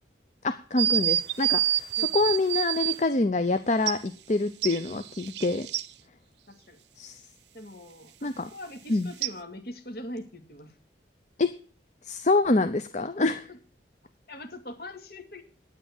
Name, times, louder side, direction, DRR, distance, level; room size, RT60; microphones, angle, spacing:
voice 1, 0.4-5.7 7.0-7.2 8.2-8.5 8.9-9.1 11.4-11.5 12.0-13.5, left 3 dB, 40° left, 10 dB, 0.6 m, -26 dB
sound 1, 0.8-3.0 3.9-4.0 4.6-5.9 9.2-9.3, right 12 dB, 70° right, 0.6 m, -27 dB
voice 2, 6.5-6.8 7.5-10.7 13.5-13.6 14.3-15.4, left 1 dB, 55° left, 4 dB, 2.4 m, -42 dB
9.6 x 9.6 x 7.2 m, 0.40 s
head